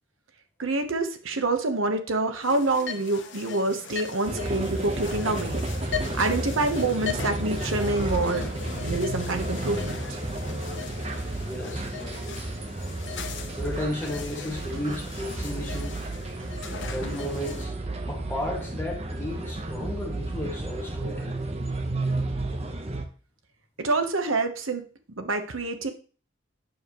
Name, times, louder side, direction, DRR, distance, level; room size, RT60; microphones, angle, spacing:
voice 1, 0.6-8.5 8.8-10.2 16.4-16.5 23.8-24.8 25.2-25.9, right 2 dB, 80° right, 1.1 m, -27 dB
sound 1, 2.4-17.7, left 7 dB, 60° left, 0.9 m, -39 dB
sound 2, 4.3-23.0, right 2 dB, 30° right, 0.9 m, -32 dB
voice 2, 11.4-12.4 13.6-16.1 16.9-17.7 18.1-21.4, left 1 dB, 10° left, 1.8 m, -34 dB
9.1 x 7.0 x 3.1 m
head